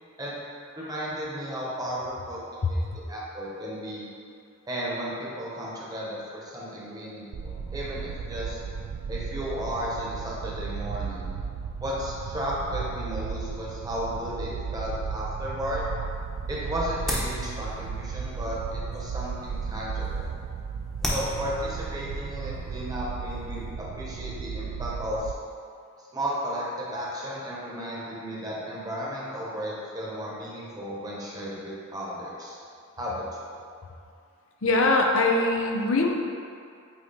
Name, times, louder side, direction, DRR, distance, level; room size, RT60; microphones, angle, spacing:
voice 1, 0.8-4.1 4.7-8.6 9.1-11.3 11.8-15.9 16.5-20.3 21.1-25.3 26.0-32.6 33.0-33.5, equal, 20° right, -5 dB, 1.1 m, -34 dB
voice 2, 2.6-3.0 34.6-36.1, left 2 dB, 75° left, 1 dB, 0.7 m, -22 dB
sound 1, 7.3-25.3, right 6 dB, 75° right, 0.3 m, -35 dB
sound 2, 16.0-23.7, equal, ahead, 0.9 m, -38 dB
8.6 x 3.0 x 4.2 m, 2.4 s
head